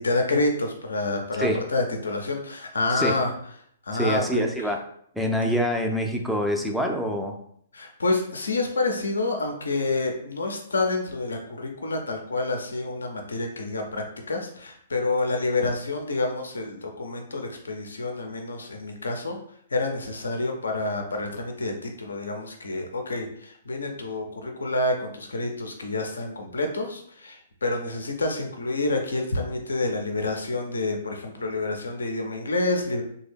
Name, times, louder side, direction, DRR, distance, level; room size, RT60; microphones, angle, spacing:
voice 1, 0.0-3.3 3.9-4.5 7.7-19.4 19.7-33.0, left 2 dB, 70° left, 3 dB, 0.6 m, -28 dB
voice 2, 3.9-4.8 5.2-7.3, equal, ahead, 1 dB, 0.4 m, -25 dB
3.3 x 2.2 x 3.3 m, 0.66 s
figure-of-eight pair, 120°, 0 cm